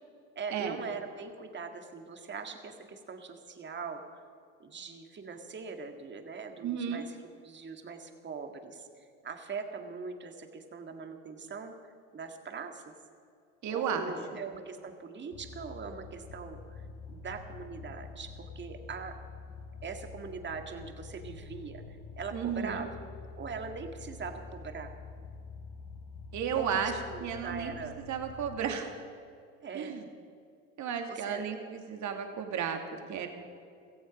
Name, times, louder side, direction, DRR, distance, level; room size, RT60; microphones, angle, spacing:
voice 1, 0.4-4.2 4.6-7.2 7.4-12.9 13.7-16.8 17.1-19.1 19.8-21.8 22.2-22.9 23.4-24.9 26.5-28.0 29.6-30.0 31.1-31.5, right 5 dB, 30° right, 5 dB, 2.0 m, -41 dB
voice 2, 6.6-7.0 13.6-14.1 22.3-22.9 26.3-27.7 28.1-28.9 29.7-30.0 30.8-33.3, right 7 dB, 50° right, 5 dB, 2.4 m, -33 dB
sound 1, 15.3-28.6, left 4 dB, 70° left, 4.2 m, -47 dB
17.0 x 15.0 x 5.3 m, 2.3 s
supercardioid pair, 90°, 37 cm